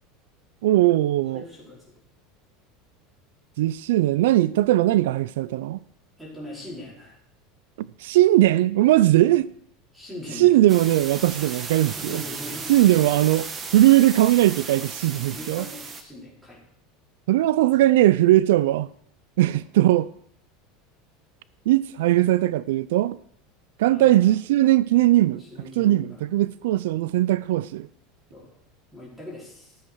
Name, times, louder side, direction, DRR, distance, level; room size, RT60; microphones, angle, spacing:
voice 1, 0.6-1.4 3.6-5.8 7.8-9.5 10.4-12.2 12.7-13.5 13.7-15.6 17.3-18.9 19.4-20.1 21.7-23.2 23.8-25.4 25.8-27.9, right 15 dB, 85° right, 0.4 m, -19 dB
voice 2, 1.3-1.8 6.2-7.2 9.9-10.5 11.8-12.9 15.1-16.6 17.6-17.7 19.5-19.6 23.9-24.6 25.3-26.3 28.3-28.5 28.9-29.8, left 1 dB, 5° right, 4.7 m, -41 dB
sound 1, 10.7-16.0, right 5 dB, 20° right, 1.2 m, -35 dB
14.0 x 7.8 x 6.2 m
supercardioid pair, 165°, 0 cm